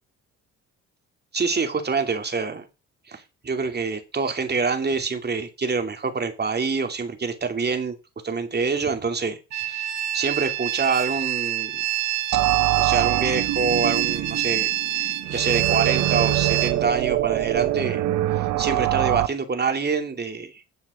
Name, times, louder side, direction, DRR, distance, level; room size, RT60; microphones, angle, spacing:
voice 1, 1.3-2.6 3.1-8.0 8.2-11.8 12.8-18.0 18.3-20.6, right 4 dB, 35° right, 2.7 m, -26 dB
sound 1, 9.5-16.7, right 14 dB, 65° right, 1.1 m, -26 dB
sound 2, 12.3-19.3, right 15 dB, 85° right, 0.9 m, -24 dB
10.5 x 7.3 x 6.3 m
cardioid pair, 90°, 30 cm